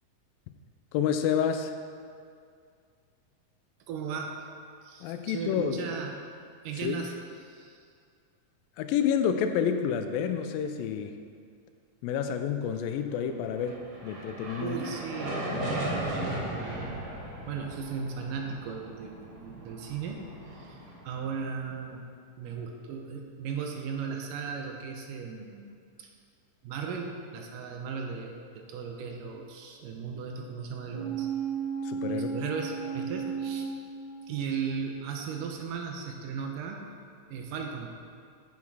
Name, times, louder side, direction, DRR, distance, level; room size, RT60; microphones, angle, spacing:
voice 1, 0.9-1.7 5.0-5.9 6.8-7.0 8.8-11.2 12.0-14.8 31.8-32.3, left 8 dB, 85° left, 7 dB, 2.4 m, -29 dB
voice 2, 3.9-4.4 4.8-6.2 6.6-7.8 14.6-17.1 17.5-20.3 20.6-20.8 21.0-22.0 22.4-25.7 26.0-26.1 26.6-31.3 32.1-33.7 34.3-36.9 37.3-37.9, right 6 dB, 80° right, 2 dB, 2.3 m, -36 dB
sound 1, 13.3-21.7, right 1 dB, 45° right, 1.4 m, -37 dB
sound 2, 30.9-34.6 35.0-35.1, right 6 dB, 20° right, 2.5 m, -34 dB
9.6 x 7.3 x 4.7 m, 2.3 s
omnidirectional pair, 4.0 m